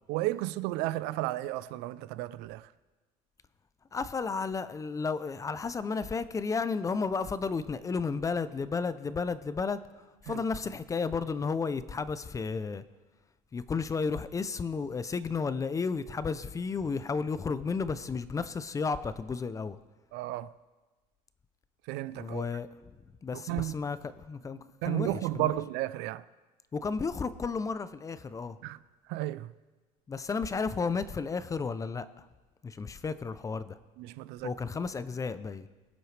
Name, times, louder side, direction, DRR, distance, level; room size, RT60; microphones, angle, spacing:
voice 1, 0.1-2.7 10.3-10.4 20.1-20.5 21.9-22.4 23.3-23.8 24.8-26.2 28.6-28.8 29.1-29.5 34.0-34.5, right 16 dB, 70° right, 0.4 m, -33 dB
voice 2, 3.9-9.8 10.3-12.8 13.5-19.8 22.1-22.7 23.2-25.5 26.7-28.6 30.1-32.3 32.6-33.8 34.4-35.7, left 5 dB, 20° left, 0.4 m, -33 dB
22.0 x 7.7 x 3.3 m
cardioid pair, 130°, 18 cm